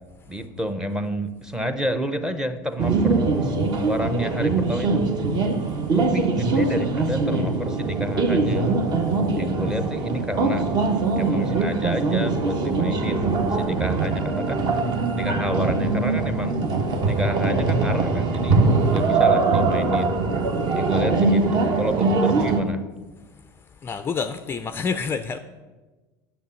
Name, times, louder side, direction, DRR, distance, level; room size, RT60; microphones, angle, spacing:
voice 1, 0.3-3.3 3.8-5.2 5.9-8.8 9.4-10.7 11.2-14.7 15.1-16.6 17.1-18.6 18.9-20.2 20.8-22.8, equal, 5° right, 0.7 m, -29 dB
sound 1, 2.8-22.6, right 3 dB, 40° right, 1.2 m, -22 dB
voice 2, 23.8-25.4, left 5 dB, 20° left, 0.4 m, -27 dB
9.3 x 7.8 x 7.0 m
supercardioid pair, 130°, 11 cm